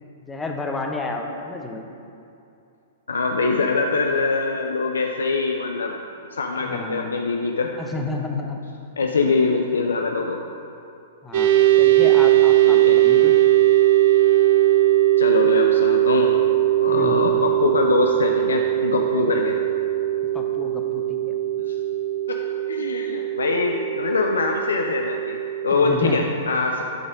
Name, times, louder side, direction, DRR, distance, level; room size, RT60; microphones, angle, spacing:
voice 1, 0.2-1.8 6.6-7.3 7.8-8.6 11.2-13.3 16.9-17.3 20.3-21.3 25.7-26.3, left 3 dB, 10° left, 1 dB, 0.9 m, -31 dB
voice 2, 3.1-5.9 6.3-7.7 9.0-10.4 12.6-13.0 15.2-16.3 16.8-19.6 21.7-21.8 22.3-22.4 22.7-25.4 25.6-26.9, left 4 dB, 75° left, 2 dB, 0.5 m, -23 dB
sound 1, 11.3-26.1, right 14 dB, 55° right, 0.6 m, -19 dB
11.0 x 4.0 x 5.0 m, 2.6 s
figure-of-eight pair, 110°, 0 cm